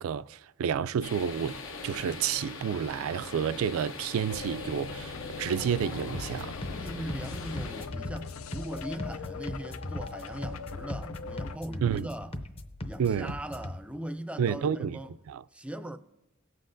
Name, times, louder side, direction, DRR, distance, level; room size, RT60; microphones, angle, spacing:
voice 1, 0.0-6.5 11.8-12.1 13.0-13.3 14.4-15.0 15.3-15.4, right 8 dB, 85° right, 0.3 m, -30 dB
sound 1, 1.0-7.9, left 4 dB, 75° left, 0.9 m, -42 dB
sound 2, 4.3-11.6, left 5 dB, 90° left, 0.4 m, -41 dB
sound 3, 6.1-13.8, left 1 dB, 30° left, 0.7 m, -39 dB
voice 2, 6.7-12.4 12.8-15.1 15.5-16.0, right 1 dB, 5° right, 0.4 m, -40 dB
18.0 x 7.6 x 2.6 m
head